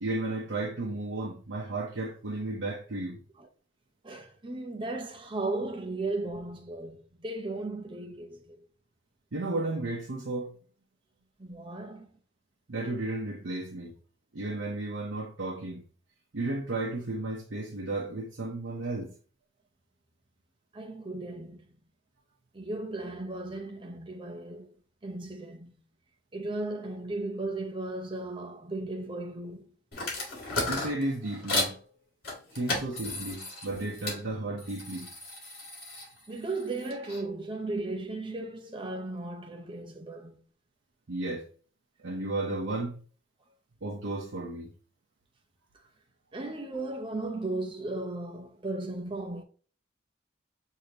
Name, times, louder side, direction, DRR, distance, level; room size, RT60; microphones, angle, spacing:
voice 1, 0.0-3.2 9.3-10.6 12.7-13.9 14.3-15.8 16.3-19.1 30.7-31.8 32.5-35.1 41.1-41.5 42.0-43.0 43.8-44.7, right 2 dB, 70° right, 0.8 m, -33 dB
voice 2, 4.0-8.6 11.4-12.1 20.7-21.7 22.5-24.7 25.0-25.7 26.3-29.7 32.7-32.8 36.3-40.4 46.3-49.4, right 2 dB, 25° right, 0.6 m, -36 dB
sound 1, 29.9-31.8 32.2-34.2 34.6-37.2, left 2 dB, 50° left, 2.2 m, -35 dB
6.6 x 2.8 x 2.9 m
head